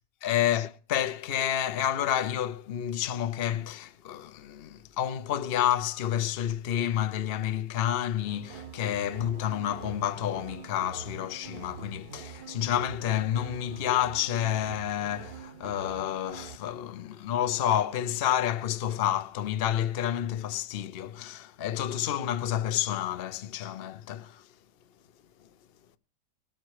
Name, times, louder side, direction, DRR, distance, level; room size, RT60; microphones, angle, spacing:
voice 1, 0.2-24.5, left 11 dB, 45° left, 0.8 m, -29 dB
sound 1, 8.3-16.6, right 6 dB, 65° right, 1.4 m, -44 dB
20.5 x 8.3 x 4.8 m
omnidirectional pair, 1.8 m